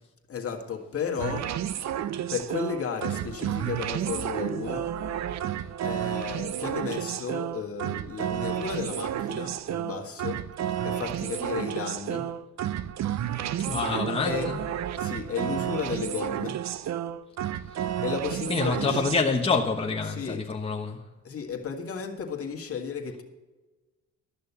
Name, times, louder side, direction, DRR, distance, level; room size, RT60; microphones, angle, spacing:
voice 1, 0.3-1.6 2.3-4.9 5.8-10.5 10.8-12.3 14.2-14.5 15.0-16.6 17.8-19.0 20.1-20.4 21.2-23.2, left 6 dB, 50° left, 1.8 m, -34 dB
sound 1, 1.2-19.2, right 10 dB, 65° right, 0.6 m, -31 dB
voice 2, 13.7-14.6 18.5-21.0, left 4 dB, 20° left, 1.2 m, -27 dB
13.0 x 6.4 x 7.1 m
cardioid pair, 90°, 30 cm